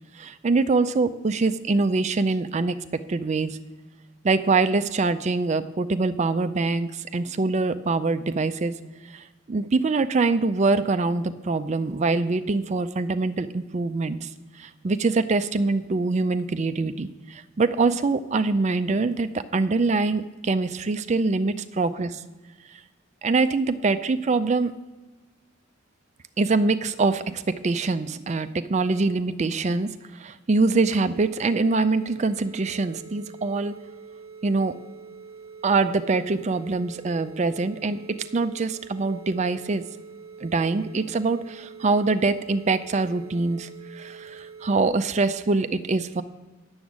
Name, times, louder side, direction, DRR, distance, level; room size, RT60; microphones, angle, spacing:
voice 1, 0.2-2.8 3.1-3.6 4.2-8.7 9.1-14.3 14.6-22.2 23.2-24.7 26.4-33.7 34.4-34.7 35.6-38.0 38.3-39.8 40.4-46.2, right 3 dB, 35° right, 11 dB, 0.4 m, -24 dB
sound 1, 30.7-44.9, right 5 dB, 50° right, 1.0 m, -44 dB
9.6 x 7.1 x 7.3 m, 1.3 s
head